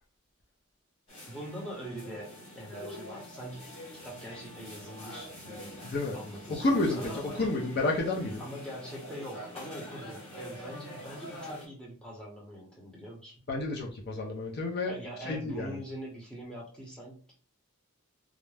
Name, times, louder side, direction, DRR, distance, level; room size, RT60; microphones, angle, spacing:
sound 1, 1.1-11.7, equal, 30° left, 1.0 m, -45 dB
voice 1, 1.3-5.8 6.1-7.5 8.4-13.4 14.9-17.4, equal, 5° left, -4 dB, 0.8 m, -43 dB
voice 2, 5.8-6.2 6.5-7.1 7.4-8.4 13.5-14.9 15.2-15.8, left 2 dB, 50° left, -1 dB, 0.5 m, -30 dB
2.4 x 2.1 x 3.2 m, 0.40 s
head